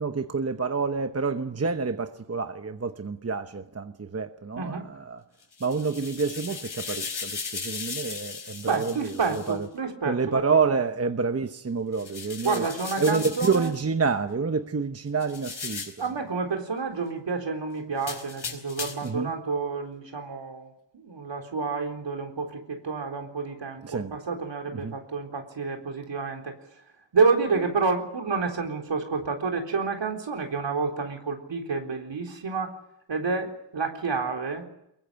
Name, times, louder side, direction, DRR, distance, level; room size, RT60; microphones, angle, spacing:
voice 1, 0.0-5.2 5.6-9.1 9.5-9.7 10.1-12.7 13.0-15.9 19.0-19.3 23.8-24.2 24.7-25.0, right 5 dB, 35° right, 1.0 m, -28 dB
voice 2, 4.6-4.9 8.7-10.4 12.4-13.7 16.0-20.7 20.9-26.6 27.1-32.8 33.1-34.6, right 4 dB, 85° right, 3.9 m, -29 dB
sound 1, 5.4-9.6 11.9-13.8 15.2-16.1 18.0-19.2, left 5 dB, 70° left, 4.8 m, -37 dB
23.5 x 22.5 x 7.7 m
wide cardioid pair, 115°, 43 cm